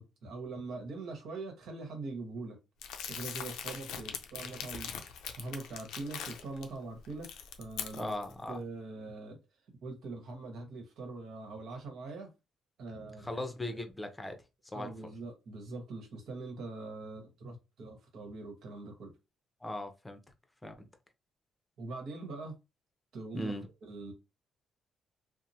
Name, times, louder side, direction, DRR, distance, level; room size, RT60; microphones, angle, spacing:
voice 1, 0.0-2.6 3.1-4.9 5.4-7.3 7.6-8.1 8.5-9.4 9.8-12.3 12.8-13.8 14.7-19.1 21.8-22.6 23.1-23.5 23.8-24.1, right 3 dB, 75° right, 1.1 m, -42 dB
Crumpling crinkling, 2.8-6.6 7.1-8.3, left 8 dB, 85° left, 0.4 m, -41 dB
voice 2, 7.9-8.6 13.2-14.4 14.7-15.1 19.6-20.2 20.6-20.9 23.3-23.7, left 1 dB, 15° left, 0.6 m, -38 dB
2.9 x 2.1 x 2.7 m
cardioid pair, 90°, 0 cm